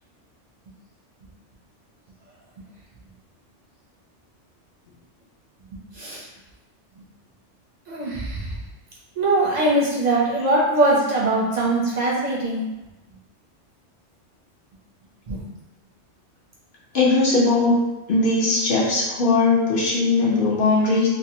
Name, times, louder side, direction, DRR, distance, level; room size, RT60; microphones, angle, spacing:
voice 1, 5.9-6.3 7.9-8.6 9.2-12.6 15.3-15.4, right 2 dB, 50° right, -6 dB, 0.5 m, -21 dB
voice 2, 16.9-17.8 18.1-21.1, left 3 dB, 55° left, -5 dB, 0.7 m, -19 dB
2.7 x 2.1 x 2.7 m, 1.0 s
omnidirectional pair, 1.2 m